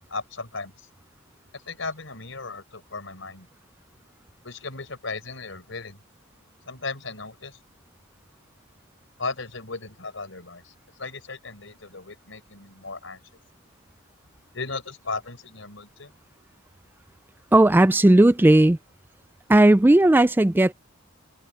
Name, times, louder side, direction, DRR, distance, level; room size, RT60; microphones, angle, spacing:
voice 1, 0.1-0.7 1.7-3.5 4.4-6.0 6.7-7.5 9.2-10.6 11.0-13.2 14.5-16.1, left 3 dB, 70° left, 4.9 m, -36 dB
voice 2, 17.5-18.8 19.5-20.7, right 1 dB, 10° right, 0.3 m, -16 dB
head